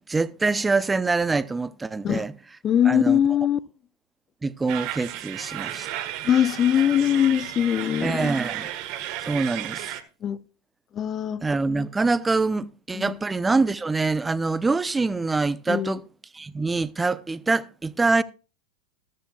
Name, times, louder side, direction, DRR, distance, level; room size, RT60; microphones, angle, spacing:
voice 1, 0.0-2.3 2.8-3.2 4.4-5.9 8.0-8.7 9.3-9.9 11.4-16.0 16.3-18.2, right 3 dB, 15° right, 0.6 m, -25 dB
voice 2, 2.6-3.6 6.2-8.3 10.2-10.4 10.9-11.4 12.9-13.2 15.7-16.0, left 9 dB, 30° left, 0.7 m, -22 dB
sound 1, 4.7-10.0, right 13 dB, 50° right, 1.4 m, -33 dB
14.0 x 14.0 x 2.3 m
hypercardioid pair, 95°, 0 cm